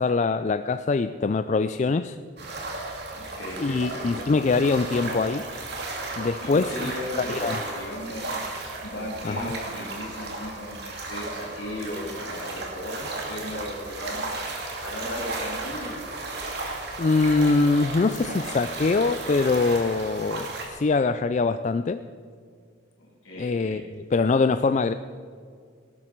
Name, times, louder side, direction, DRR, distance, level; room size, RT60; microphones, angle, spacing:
voice 1, 0.0-2.2 3.6-5.5 6.2-6.9 7.2-7.6 9.2-9.5 17.0-22.0 23.4-23.8 24.1-24.9, left 4 dB, 35° left, 11 dB, 0.3 m, -23 dB
sound 1, 2.4-20.7, right 2 dB, 55° right, 2.6 m, -34 dB
voice 2, 3.1-4.1 6.4-14.3 14.8-16.2 23.0-23.8, left 1 dB, 80° left, -4 dB, 3.0 m, -36 dB
18.0 x 12.5 x 4.6 m, 2.2 s
head